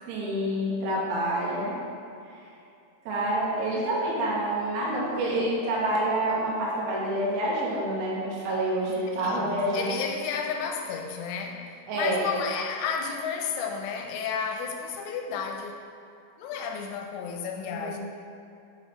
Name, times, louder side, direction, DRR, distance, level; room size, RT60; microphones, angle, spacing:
voice 1, 0.1-1.7 3.1-9.9 11.9-12.3 17.7-18.0, right 1 dB, 75° right, -5 dB, 3.4 m, -27 dB
voice 2, 9.1-15.8 16.4-18.0, left 6 dB, 90° left, 2 dB, 3.1 m, -32 dB
7.4 x 5.4 x 3.5 m, 2.5 s
omnidirectional pair, 5.5 m